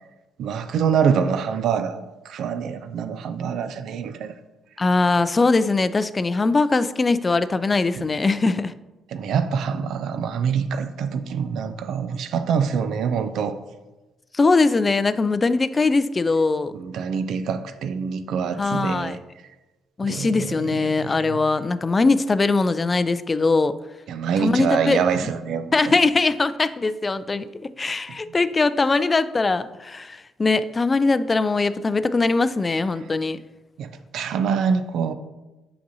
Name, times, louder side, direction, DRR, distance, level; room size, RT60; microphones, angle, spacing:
voice 1, 0.4-4.4 8.0-8.1 9.1-13.6 16.7-19.2 20.0-21.4 24.1-25.7 33.8-35.1, right 6 dB, 70° right, 0.4 m, -25 dB
voice 2, 4.8-8.7 14.3-16.7 18.6-19.2 20.0-23.7 24.4-25.0 25.7-33.4, left 3 dB, 30° left, 0.3 m, -21 dB
6.0 x 5.9 x 2.7 m
hypercardioid pair, 50°, 0 cm